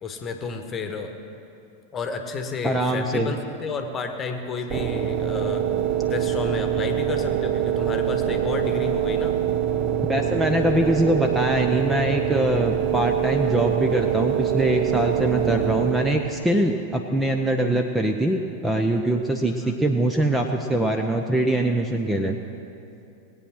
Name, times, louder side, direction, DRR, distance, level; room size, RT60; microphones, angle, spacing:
voice 1, 0.0-1.1 1.9-5.6 6.1-9.3 19.5-19.8, left 4 dB, 25° left, 6 dB, 1.4 m, -31 dB
voice 2, 2.6-3.3 10.1-22.4, right 1 dB, 5° right, 4 dB, 0.8 m, -23 dB
sound 1, 4.7-16.4, right 10 dB, 35° right, 0.8 m, -24 dB
20.0 x 8.8 x 6.2 m, 2.7 s
figure-of-eight pair, 90°, 0 cm